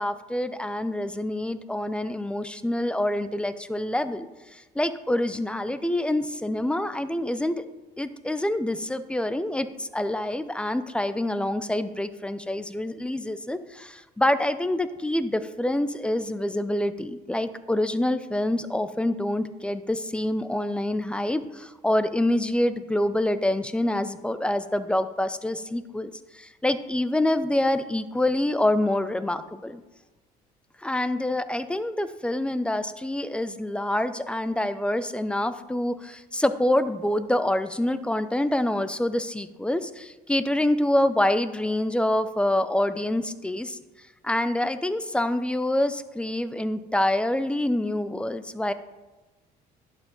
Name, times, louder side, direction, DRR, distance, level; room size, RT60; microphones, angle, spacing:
voice 1, 0.0-4.3 4.5-7.6 8.0-29.8 30.8-43.8 44.2-48.7, left 1 dB, 5° left, 12 dB, 0.4 m, -26 dB
11.5 x 4.9 x 3.8 m, 1.1 s
cardioid pair, 110°, 17 cm